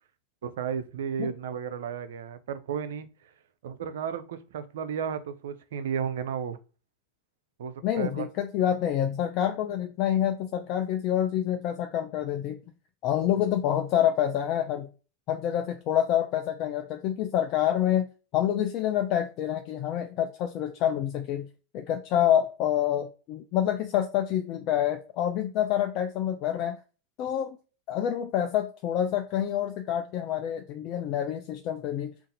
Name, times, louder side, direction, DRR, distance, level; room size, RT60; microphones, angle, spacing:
voice 1, 0.4-3.3 3.6-6.6 7.6-8.3 13.3-13.5, right 7 dB, 70° right, 0.5 m, -33 dB
voice 2, 7.8-12.6 13.0-14.9 15.3-18.1 18.3-21.5 21.7-26.8 27.2-27.6 27.9-32.1, left 10 dB, 50° left, 0.4 m, -27 dB
2.6 x 2.4 x 3.9 m
hypercardioid pair, 90°, 0 cm